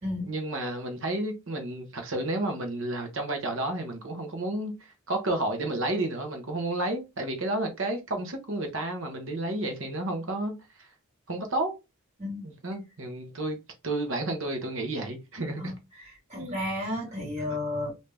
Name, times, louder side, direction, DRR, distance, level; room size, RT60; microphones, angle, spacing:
voice 1, 0.2-10.5 10.8-10.9 11.3-11.7 12.4-13.6 13.8-15.7 16.3-16.6, right 2 dB, 65° right, 0.9 m, -31 dB
voice 2, 15.6-17.9, left 1 dB, 30° right, 1.9 m, -33 dB
3.3 x 2.7 x 3.3 m
head